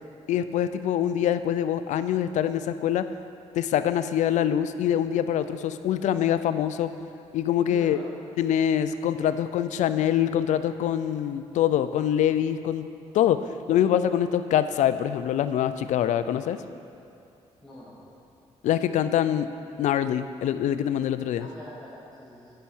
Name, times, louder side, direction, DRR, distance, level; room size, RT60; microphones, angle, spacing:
voice 1, 0.3-3.1 3.5-6.9 7.3-8.0 8.4-12.9 13.1-13.4 13.7-16.6 18.6-19.5 19.8-21.4, left 10 dB, 75° left, 12 dB, 0.4 m, -24 dB
voice 2, 7.7-8.1 17.6-18.1 21.4-22.5, left 1 dB, 5° left, -10 dB, 2.1 m, -44 dB
8.2 x 5.6 x 6.1 m, 2.6 s
supercardioid pair, 65°, 12 cm